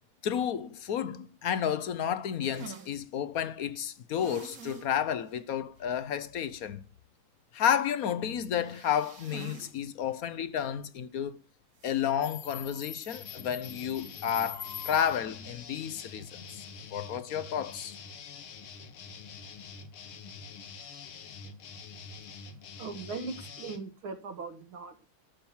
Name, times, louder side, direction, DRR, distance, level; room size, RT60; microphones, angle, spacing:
voice 1, 0.2-6.8 7.5-11.4 11.8-18.0, left 9 dB, 65° left, 0.9 m, -31 dB
sound 1, 2.4-2.9 4.1-4.9 5.3-5.4 5.8-5.9 8.5-9.7 10.0-10.1 11.8-12.1, right 6 dB, 45° right, 1.7 m, -47 dB
Subway metro underground, 12.2-15.4, left 9 dB, 25° left, 1.1 m, -43 dB
sound 2, 13.1-23.8, left 5 dB, 85° left, 2.2 m, -46 dB
voice 2, 22.8-25.0, right 4 dB, 75° right, 2.5 m, -39 dB
12.5 x 6.0 x 7.2 m
omnidirectional pair, 2.3 m